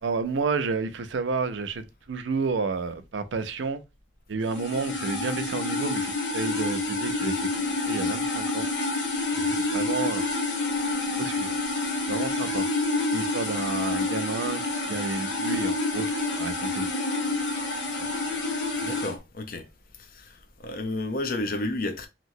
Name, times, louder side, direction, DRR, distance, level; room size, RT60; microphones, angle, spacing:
voice 1, 0.0-3.8 4.3-8.7 9.6-10.3 11.2-11.6 12.1-12.7 13.1-16.1 16.3-16.9 18.0-18.1, right 4 dB, 85° right, 0.5 m, -31 dB
sound 1, 4.5-19.1, left 2 dB, 80° left, 1.0 m, -28 dB
voice 2, 18.8-19.7 20.1-22.1, left 2 dB, 50° left, 0.6 m, -32 dB
2.9 x 2.9 x 2.6 m
head